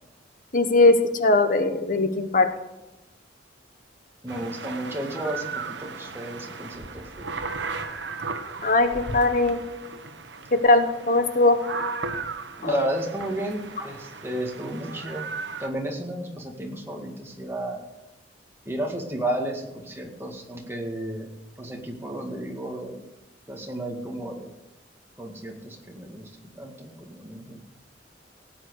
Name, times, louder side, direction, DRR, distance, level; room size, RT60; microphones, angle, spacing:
voice 1, 0.5-2.5 8.6-9.6 10.5-11.6 12.6-12.9 14.3-14.4, left 2 dB, 45° left, 8 dB, 1.1 m, -20 dB
voice 2, 4.2-7.3 12.6-15.3 15.6-17.8 18.7-21.3 21.6-23.0 23.5-24.5 25.2-27.6, right 1 dB, 15° right, 0 dB, 2.0 m, -33 dB
sound 1, 4.3-15.7, right 4 dB, 70° right, 1.3 m, -36 dB
17.5 x 8.6 x 6.5 m, 1.0 s
head